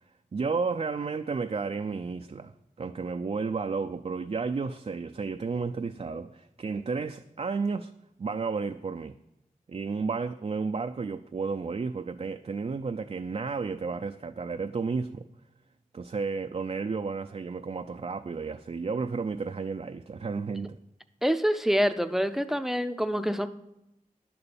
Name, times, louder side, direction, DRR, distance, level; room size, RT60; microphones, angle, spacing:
voice 1, 0.3-2.5 2.8-7.9 8.2-9.1 9.7-15.2 15.9-20.8, right 4 dB, 45° right, 0.4 m, -32 dB
voice 2, 21.2-23.5, equal, ahead, 0.6 m, -26 dB
10.5 x 6.9 x 7.0 m
wide cardioid pair, 85°, 14 cm